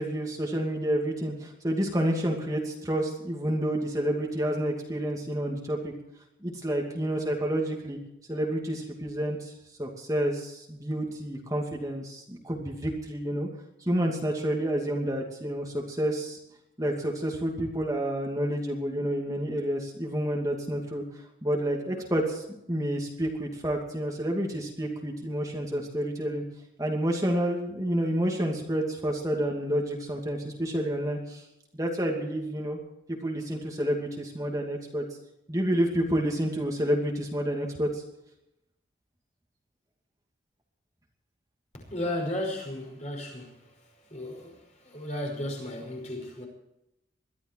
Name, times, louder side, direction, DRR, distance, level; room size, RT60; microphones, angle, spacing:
voice 1, 0.0-5.9 6.4-8.0 8.3-9.5 9.8-13.5 13.8-16.4 16.8-21.0 21.4-26.4 26.8-31.4 31.7-32.8 33.1-35.0 35.5-38.0, right 1 dB, 20° right, 2.5 m, -29 dB
voice 2, 41.9-43.6 44.1-46.5, left 1 dB, 40° left, 5.5 m, -34 dB
22.5 x 13.0 x 4.7 m
head